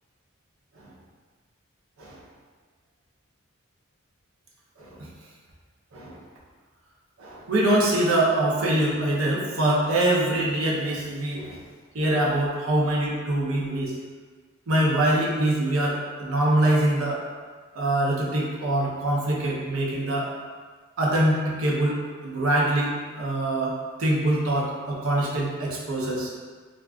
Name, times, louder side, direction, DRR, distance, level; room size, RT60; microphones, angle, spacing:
voice 1, 4.8-5.1 5.9-6.2 7.2-11.6 11.9-13.9 14.7-17.2 17.7-20.3 21.0-26.3, right 1 dB, 75° right, -4 dB, 0.7 m, -24 dB
3.5 x 2.4 x 2.3 m, 1.5 s
head